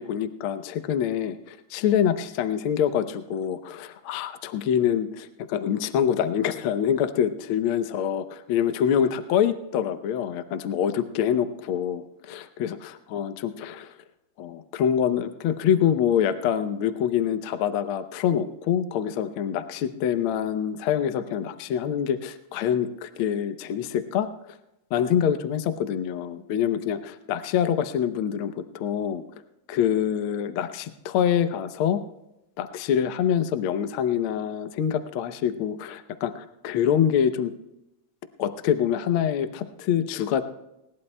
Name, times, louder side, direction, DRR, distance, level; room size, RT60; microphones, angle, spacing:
voice 1, 0.0-13.9 14.4-24.3 24.9-29.2 29.7-32.0 32.6-37.5 38.4-40.4, left 9 dB, 85° left, 10 dB, 1.1 m, -25 dB
20.0 x 19.0 x 2.2 m, 0.90 s
omnidirectional pair, 3.3 m